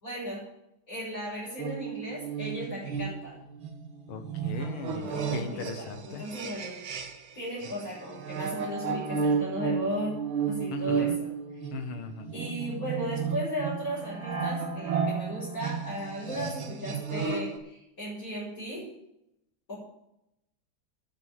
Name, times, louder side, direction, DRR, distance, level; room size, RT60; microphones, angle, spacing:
voice 1, 0.0-0.4 0.9-3.3 5.1-5.9 6.2-6.8 7.3-10.1 10.5-11.3 12.3-18.8 19.7-19.8, equal, 40° left, -9 dB, 6.1 m, -36 dB
sound 1, 1.6-7.3 7.6-17.6, right 6 dB, 75° right, 2.0 m, -33 dB
voice 2, 4.1-6.3 10.7-11.2 11.7-12.3, left 4 dB, 85° left, 7 dB, 2.1 m, -38 dB
9.6 x 7.5 x 9.2 m, 0.84 s
omnidirectional pair, 2.3 m